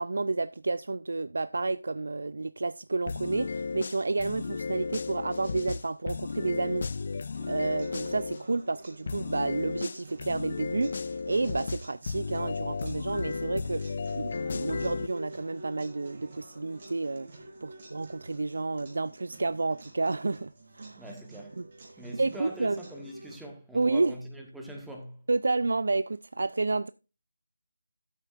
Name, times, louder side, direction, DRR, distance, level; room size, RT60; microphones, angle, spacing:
voice 1, 0.0-6.9 7.5-21.0 21.6-22.8 23.7-24.1 25.3-26.9, right 3 dB, 65° right, 0.4 m, -30 dB
sound 1, 3.1-8.4 9.1-15.1, left 4 dB, 45° left, 0.4 m, -34 dB
sound 2, 7.3-23.4, right 2 dB, 40° right, 3.8 m, -49 dB
voice 2, 21.0-21.6 22.0-25.2, right 1 dB, 5° right, 1.4 m, -43 dB
13.0 x 8.1 x 2.5 m
figure-of-eight pair, 160°, 0 cm